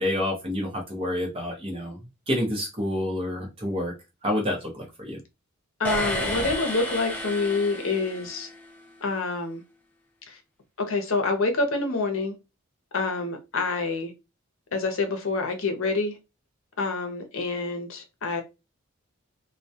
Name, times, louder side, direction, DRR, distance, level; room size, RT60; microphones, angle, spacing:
voice 1, 0.0-2.0 2.3-3.9 4.2-5.2, left 1 dB, 25° right, 0.7 m, -28 dB
voice 2, 5.8-8.5 9.0-9.6 10.3-10.4 10.8-12.3 12.9-14.1 14.7-16.2 16.8-18.4, left 3 dB, 65° left, 0.6 m, -27 dB
sound 1, 5.8-8.7, equal, 5° left, 0.3 m, -31 dB
2.2 x 2.1 x 2.7 m
head